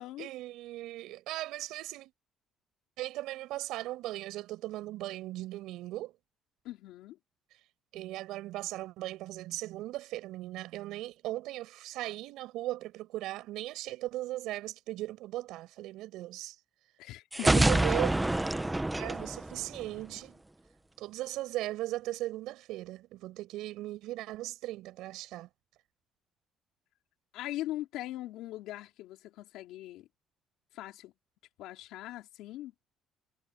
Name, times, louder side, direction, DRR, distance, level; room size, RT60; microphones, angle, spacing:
voice 1, 0.2-2.1 3.0-6.1 7.9-16.5 17.4-18.1 19.0-20.4 21.0-25.5, right 16 dB, 85° right, 6.1 m, -38 dB
voice 2, 6.6-7.2 17.0-17.8 27.3-30.1 30.7-31.1 31.6-32.7, left 15 dB, 90° left, 4.1 m, -41 dB
sound 1, 17.3-20.2, right 2 dB, 10° right, 0.9 m, -27 dB
cardioid pair, 135°, 0 cm